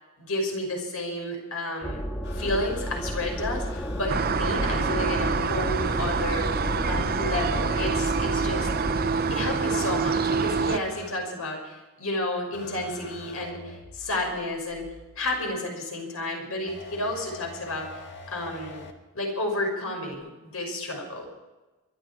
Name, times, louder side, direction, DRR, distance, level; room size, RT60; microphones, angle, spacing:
voice 1, 0.2-2.0 2.3-8.7 9.3-14.9 15.2-17.9 18.3-18.8 19.1-21.2, left 1 dB, 80° left, 1 dB, 5.7 m, -31 dB
sound 1, 1.8-9.1, equal, 20° left, 2.1 m, -32 dB
sound 2, 2.2-4.1 5.2-11.1 12.5-15.5 16.7-18.9 20.1-20.2, left 3 dB, 55° left, 1.7 m, -45 dB
sound 3, 4.1-10.8, right 5 dB, 45° right, 0.6 m, -26 dB
24.0 x 11.5 x 4.8 m, 1.2 s
head